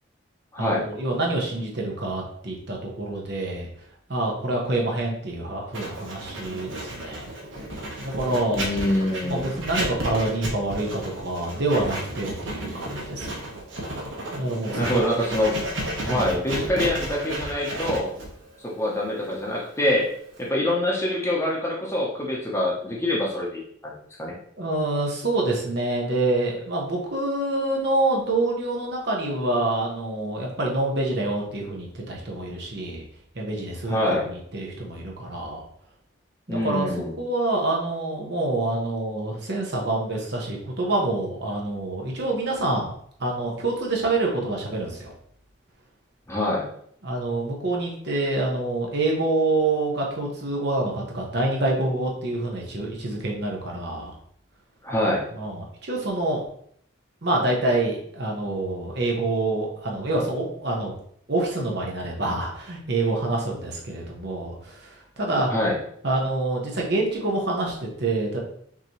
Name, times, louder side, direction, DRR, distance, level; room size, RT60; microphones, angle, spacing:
voice 1, 0.6-3.7 4.1-7.3 8.0-8.6 9.2-13.3 14.3-15.1 16.1-16.3 24.6-33.0 33.3-35.6 36.5-36.9 37.2-42.9 43.2-45.1 47.0-54.1 55.3-56.4 57.2-61.0 61.3-65.5 66.0-68.4, right 2 dB, 55° right, -1 dB, 1.1 m, -26 dB
Writing, 5.7-20.5, right 1 dB, 75° right, 1.2 m, -33 dB
voice 2, 8.5-9.5 14.8-15.6 16.0-18.1 18.6-20.1 20.4-23.9 24.2-24.3 33.9-34.3 36.5-37.1 46.3-46.7 54.8-55.2 65.5-65.8, left 1 dB, 15° left, -3 dB, 0.8 m, -25 dB
5.9 x 2.9 x 3.0 m, 0.66 s
head